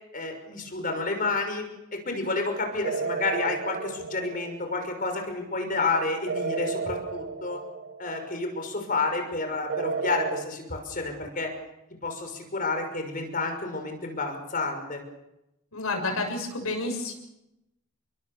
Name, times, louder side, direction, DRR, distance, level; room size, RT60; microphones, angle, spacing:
voice 1, 0.1-7.6 8.0-11.5 12.0-15.0, left 3 dB, 40° left, 5 dB, 5.9 m, -30 dB
sound 1, 2.8-4.9 6.3-8.3 9.7-10.4, right 4 dB, 60° right, 1.2 m, -32 dB
voice 2, 15.7-17.1, left 2 dB, 85° left, 4 dB, 7.1 m, -30 dB
30.0 x 22.5 x 7.1 m, 0.90 s
head